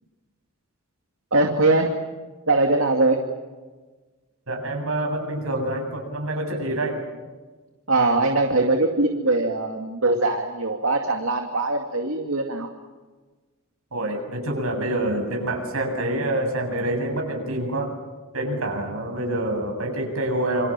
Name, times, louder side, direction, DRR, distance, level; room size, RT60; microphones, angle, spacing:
voice 1, 1.3-2.0 2.5-3.2 7.9-12.7, right 2 dB, 70° right, 3 dB, 2.4 m, -21 dB
voice 2, 4.5-7.0 13.9-17.9 18.3-20.7, right 1 dB, 85° right, 3 dB, 7.8 m, -26 dB
28.0 x 27.0 x 7.6 m, 1.3 s
head